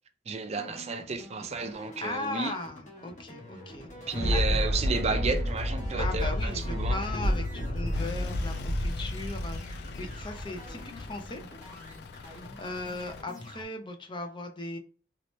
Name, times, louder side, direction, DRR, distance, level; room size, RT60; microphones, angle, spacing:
voice 1, 0.3-2.5 4.1-7.2, right 4 dB, 35° right, 0.5 m, -32 dB
sound 1, 0.6-13.6, left 1 dB, 45° left, 1.1 m, -48 dB
voice 2, 2.0-3.9 4.3-4.4 6.0-11.4 12.2-14.8, left 2 dB, 30° left, 0.6 m, -38 dB
Thunder, 3.7-11.3 11.7-11.8, left 1 dB, 90° left, 1.0 m, -30 dB
Truck / Idling, 7.9-13.2, left 4 dB, 65° left, 0.3 m, -42 dB
3.1 x 3.0 x 3.0 m
head